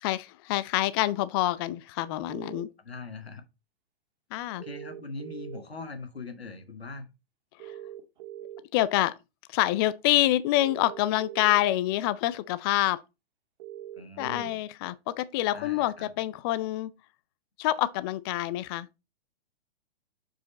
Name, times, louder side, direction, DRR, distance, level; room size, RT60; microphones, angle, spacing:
voice 1, 0.0-2.7 4.3-4.6 7.6-7.7 8.7-9.1 9.5-13.0 14.2-16.9 17.6-18.9, left 15 dB, 25° left, 0.3 m, -27 dB
sound 1, 2.3-2.6 4.6-5.6 7.6-8.6 10.6-11.6 13.6-14.5, right 12 dB, 45° right, 1.7 m, -42 dB
voice 2, 2.8-3.4 4.6-7.1 14.0-14.5 15.5-16.1, left 3 dB, 85° left, 1.6 m, -41 dB
7.2 x 5.0 x 4.1 m
figure-of-eight pair, 115°, 30 cm